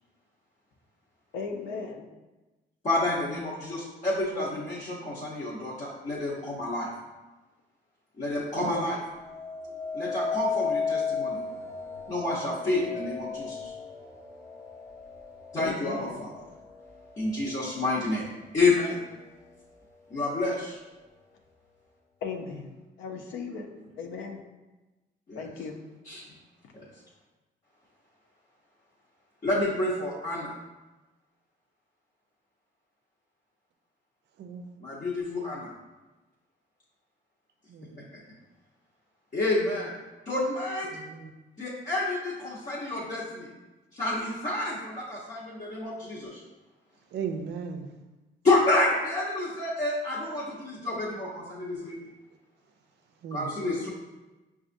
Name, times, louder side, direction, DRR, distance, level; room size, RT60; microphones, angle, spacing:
voice 1, 1.3-2.1 4.4-4.5 8.6-9.0 15.6-16.2 22.2-23.7 24.0-24.4 25.4-25.8, left 4 dB, 90° left, 3 dB, 0.5 m, -36 dB
voice 2, 2.8-6.9 8.2-9.0 9.9-11.4 12.1-13.7 15.5-16.3 17.2-18.3 18.5-19.0 20.1-20.8 25.3-25.5 26.0-26.3 26.7-26.9 29.4-30.5 34.8-35.7 39.3-39.9 40.2-40.9 41.6-43.5 43.9-46.4 48.4-52.0 53.3-53.9, left 2 dB, 40° left, -8 dB, 1.0 m, -29 dB
sound 1, 9.2-18.3 18.9-19.3, left 5 dB, 15° left, 0.5 m, -35 dB
voice 3, 37.7-38.1 40.9-41.3 47.1-47.9 53.2-53.5, right 6 dB, 60° right, 6 dB, 0.4 m, -36 dB
5.9 x 2.4 x 2.5 m, 1.1 s
cardioid pair, 90°, 20 cm